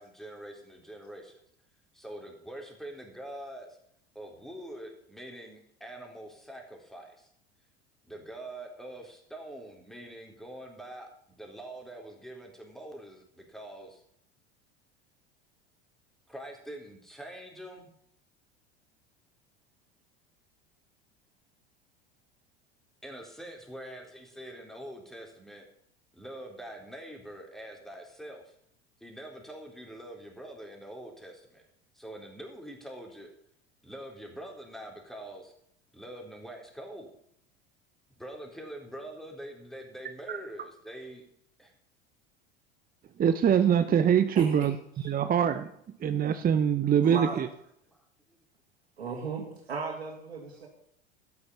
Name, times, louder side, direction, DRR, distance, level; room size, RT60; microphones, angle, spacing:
voice 1, 0.0-1.4 1.9-3.8 4.1-7.3 8.0-14.0 16.3-17.9 23.0-25.7 26.1-28.5 29.0-31.6 31.9-33.3 33.8-35.5 35.9-37.1 38.2-41.3 41.6-41.7 47.9-48.4, right 1 dB, ahead, 3.8 m, -44 dB
voice 2, 43.2-44.7 45.0-45.7 46.0-47.5, right 8 dB, 30° right, 0.9 m, -23 dB
voice 3, 44.4-44.7 45.0-45.1 47.0-47.4 49.0-50.7, right 5 dB, 85° right, 2.4 m, -36 dB
12.5 x 9.7 x 5.5 m
hypercardioid pair, 80°, 31 cm